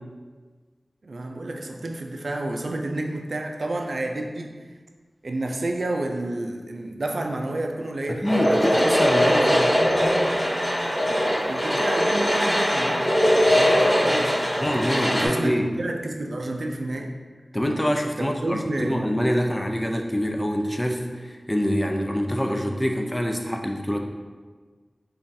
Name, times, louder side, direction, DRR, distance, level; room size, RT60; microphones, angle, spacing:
voice 1, 1.0-4.7 5.2-8.3 11.0-14.5 15.1-17.1 18.2-19.1, right 2 dB, 80° right, 3 dB, 0.3 m, -30 dB
voice 2, 8.1-9.8 14.6-15.6 17.5-24.0, equal, 15° left, 3 dB, 0.4 m, -25 dB
sound 1, 8.2-15.3, equal, 35° left, 1.2 m, -21 dB
5.1 x 2.3 x 2.6 m, 1.4 s
wide cardioid pair, 65°, 0 cm